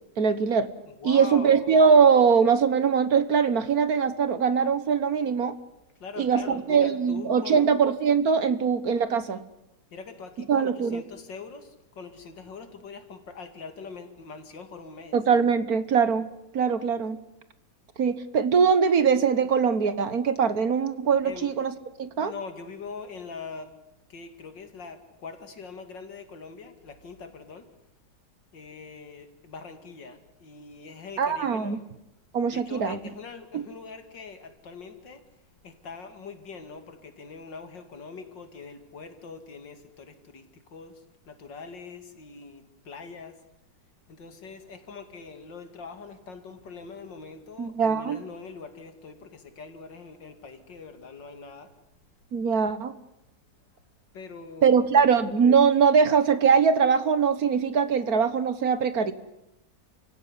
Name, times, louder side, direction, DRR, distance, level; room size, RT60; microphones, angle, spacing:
voice 1, 0.2-0.7 1.0-5.5 6.2-9.4 10.5-11.0 15.1-16.3 16.5-17.2 18.0-21.7 22.0-22.3 31.2-31.8 32.3-33.0 33.5-33.6 47.6-48.2 52.3-52.9 54.6-59.1, right 6 dB, 55° right, 13 dB, 1.8 m, -22 dB
voice 2, 0.8-1.9 6.0-7.7 9.9-15.3 21.2-21.6 22.2-23.8 24.1-27.7 28.5-31.9 32.5-35.3 35.6-43.4 44.1-51.7 54.1-55.1, left 4 dB, 85° left, 8 dB, 3.1 m, -43 dB
29.5 x 16.5 x 9.9 m, 0.88 s
omnidirectional pair, 1.9 m